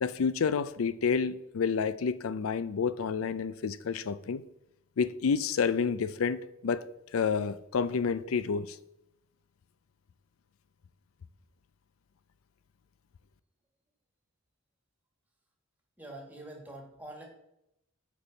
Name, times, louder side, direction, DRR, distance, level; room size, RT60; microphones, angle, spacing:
voice 1, 0.0-4.4 5.0-6.8 7.1-8.8, left 5 dB, 80° left, 0.4 m, -29 dB
voice 2, 16.0-17.2, right 1 dB, 10° right, 1.7 m, -45 dB
8.5 x 5.3 x 4.0 m
head